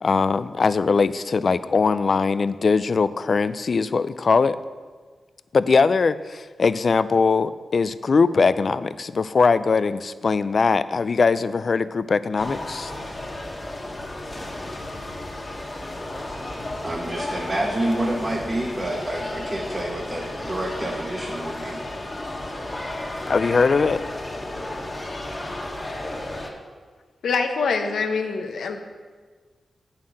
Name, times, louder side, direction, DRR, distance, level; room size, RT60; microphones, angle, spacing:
voice 1, 0.0-4.6 5.5-12.9 23.3-24.0, left 4 dB, 55° left, 15 dB, 0.4 m, -21 dB
sound 1, 12.4-26.5, left 1 dB, 25° left, 1.5 m, -33 dB
voice 2, 16.8-21.8, right 1 dB, 35° right, -3 dB, 1.4 m, -28 dB
voice 3, 27.2-28.8, left 4 dB, 85° left, 4 dB, 0.8 m, -24 dB
8.8 x 5.7 x 6.3 m, 1.5 s
cardioid pair, 55°, 0 cm